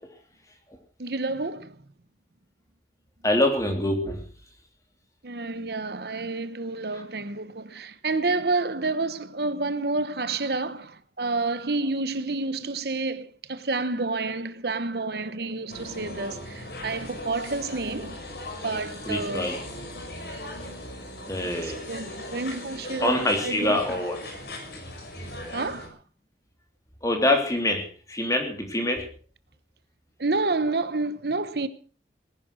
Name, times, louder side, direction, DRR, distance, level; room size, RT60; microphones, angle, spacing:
voice 1, 1.0-1.8 5.2-18.2 18.6-19.5 21.4-23.8 25.5-26.0 30.2-31.7, right 3 dB, 65° right, 1.0 m, -29 dB
voice 2, 3.2-4.2 19.1-19.6 21.3-21.8 23.0-24.2 27.0-29.1, left 1 dB, 20° left, 3.4 m, -25 dB
sound 1, 15.7-25.9, left 1 dB, 65° left, 5.9 m, -38 dB
19.0 x 11.5 x 6.2 m
head